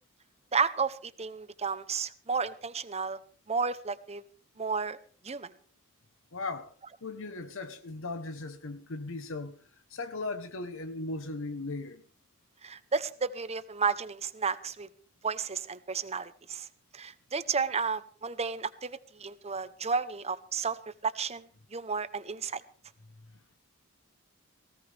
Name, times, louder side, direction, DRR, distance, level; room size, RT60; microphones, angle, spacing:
voice 1, 0.5-3.2 3.5-4.2 4.6-5.0 5.2-5.5 12.6-14.9 15.2-16.7 16.9-20.8 21.0-22.6, right 5 dB, 30° right, 0.9 m, -32 dB
voice 2, 6.3-6.7 7.0-9.6 9.9-12.0, left 3 dB, 65° left, 1.2 m, -37 dB
19.0 x 17.0 x 3.5 m
head